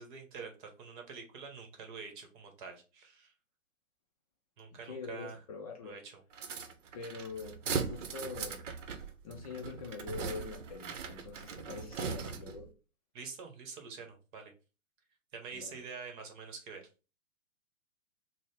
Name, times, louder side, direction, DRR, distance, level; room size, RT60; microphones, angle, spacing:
voice 1, 0.0-3.3 4.6-5.4 5.8-6.2 13.1-14.5 15.3-16.8, right 5 dB, 40° right, 1.0 m, -46 dB
voice 2, 4.8-6.0 6.9-8.7 9.2-12.7 15.5-15.8, left 5 dB, 30° left, 0.4 m, -44 dB
sound 1, 6.3-12.7, right 5 dB, 65° right, 0.7 m, -39 dB
3.9 x 2.1 x 3.3 m
figure-of-eight pair, 120°, 39 cm